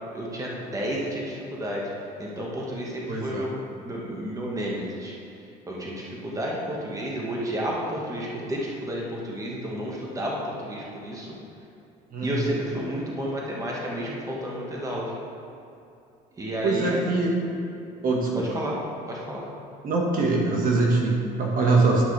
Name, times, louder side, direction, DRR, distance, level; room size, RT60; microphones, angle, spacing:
voice 1, 0.0-1.9 2.2-3.5 3.8-5.1 5.7-11.3 12.2-15.1 16.4-17.1 18.3-18.8 19.1-19.5, equal, 20° right, -4 dB, 1.6 m, -31 dB
voice 2, 3.1-3.5 12.1-12.4 16.6-17.3 18.0-18.6 19.8-22.0, right 3 dB, 55° right, -2 dB, 1.6 m, -23 dB
11.5 x 5.7 x 3.4 m, 2.6 s
supercardioid pair, 95°, 18 cm